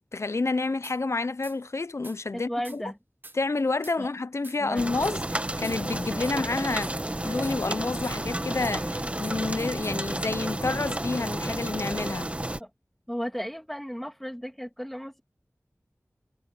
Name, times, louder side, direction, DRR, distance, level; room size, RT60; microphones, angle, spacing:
voice 1, 0.0-2.8 3.3-6.9 7.2-12.3, left 3 dB, 70° left, 0.6 m, -29 dB
sound 1, 0.8-1.0 1.4-1.6 2.0-2.2 2.6-2.8 3.2-3.4 3.8-4.0 4.4-4.6 5.0-5.2 5.6-5.8 6.2-6.4 6.8-7.0 7.4-7.6 8.0-8.2 8.6-8.8 9.2-9.4 9.8-10.0, right 2 dB, 40° right, 1.2 m, -46 dB
voice 2, 2.3-3.0 4.0-4.1 4.6-5.0 9.0-9.1 12.6-12.7 13.1-15.2, equal, 5° left, 2.9 m, -35 dB
sound 2, 4.7-12.6, right 1 dB, 25° right, 1.2 m, -31 dB
wide cardioid pair, 45°, 5 cm